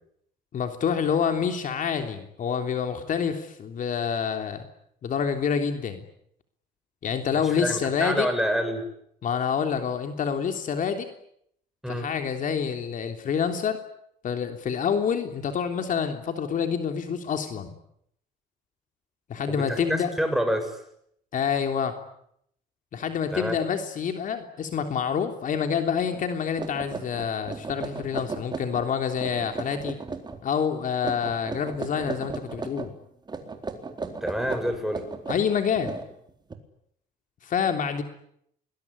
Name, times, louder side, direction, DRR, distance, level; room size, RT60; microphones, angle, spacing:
voice 1, 0.5-4.7 5.0-6.0 7.0-8.3 9.2-11.1 11.9-13.8 14.2-17.7 19.3-20.1 21.3-21.9 22.9-30.0 30.4-32.9 35.3-36.0 37.4-38.0, left 7 dB, 50° left, 6 dB, 3.4 m, -27 dB
voice 2, 7.3-8.8 11.8-12.1 19.5-20.8 23.3-23.6 34.2-35.1, equal, ahead, 6 dB, 7.1 m, -28 dB
sound 1, 26.1-26.2 26.6-28.9 29.2-30.4 31.0-32.9 33.3-36.5, right 4 dB, 25° right, 4.0 m, -35 dB
28.0 x 21.0 x 9.9 m, 0.73 s
cardioid pair, 110°, 17 cm